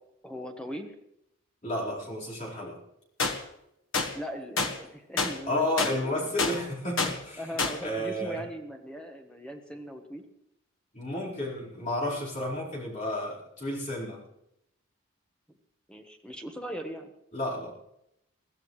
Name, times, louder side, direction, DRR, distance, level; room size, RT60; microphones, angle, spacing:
voice 1, 0.2-0.9 4.1-6.3 7.4-10.2 15.9-17.1, equal, 5° left, 3 dB, 1.3 m, -39 dB
voice 2, 1.6-2.8 5.5-7.4 7.8-8.4 10.9-14.2 17.3-17.7, left 1 dB, 35° left, -5 dB, 4.4 m, -32 dB
sound 1, 3.2-3.3 3.9-4.1 4.6-4.7 5.2-5.3 5.8-5.9 6.4-6.5 7.0-7.1 7.6-7.7, left 3 dB, 70° left, 1.6 m, -26 dB
22.0 x 14.5 x 3.2 m, 0.80 s
head